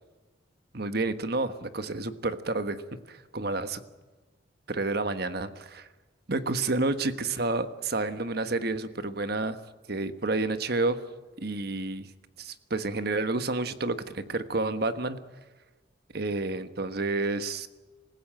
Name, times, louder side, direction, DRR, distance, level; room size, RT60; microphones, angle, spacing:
voice 1, 0.7-2.8 3.1-3.8 4.7-5.9 6.3-9.6 9.9-11.0 11.4-12.1 12.4-15.2 16.1-17.7, right 2 dB, 55° right, 11 dB, 1.4 m, -30 dB
27.0 x 16.0 x 8.8 m, 1.3 s
head